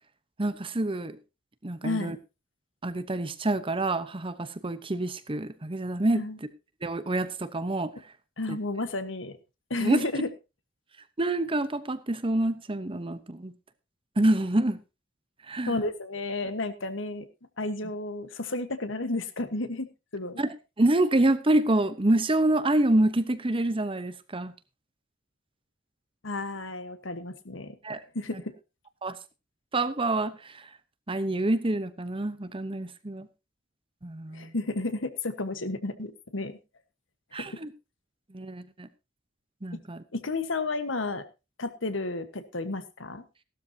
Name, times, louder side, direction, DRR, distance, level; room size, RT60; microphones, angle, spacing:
voice 1, 0.4-1.2 1.6-2.2 2.8-6.2 6.8-7.9 8.5-8.6 9.8-10.0 11.2-13.5 14.2-14.8 15.5-15.7 20.4-20.5 20.8-24.5 27.8-28.0 29.0-29.2 29.7-30.6 31.1-33.3 34.0-34.5 37.3-37.7 38.3-38.9 39.6-40.0, right 1 dB, 25° right, 12 dB, 0.9 m, -27 dB
voice 2, 1.8-2.2 6.1-6.4 8.4-9.4 9.7-10.3 15.7-17.3 17.6-19.9 20.1-20.4 26.2-27.8 28.1-28.5 34.3-36.6 37.4-37.6 39.7-39.8 40.1-41.2 41.6-43.2, left 2 dB, 70° left, 11 dB, 1.3 m, -32 dB
15.5 x 12.5 x 2.8 m, 0.27 s
head